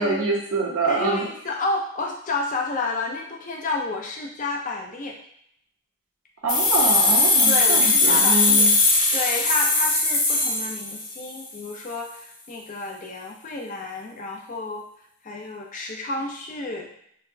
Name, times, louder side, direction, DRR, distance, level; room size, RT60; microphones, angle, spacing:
voice 1, 0.0-1.2 6.4-8.7, right 3 dB, 70° right, -2 dB, 0.8 m, -25 dB
voice 2, 0.8-5.2 7.4-14.8 15.2-16.9, left 3 dB, 35° left, 1 dB, 0.4 m, -30 dB
sound 1, 6.5-11.3, left 3 dB, 75° left, 0.9 m, -19 dB
3.9 x 2.1 x 2.6 m, 0.68 s
head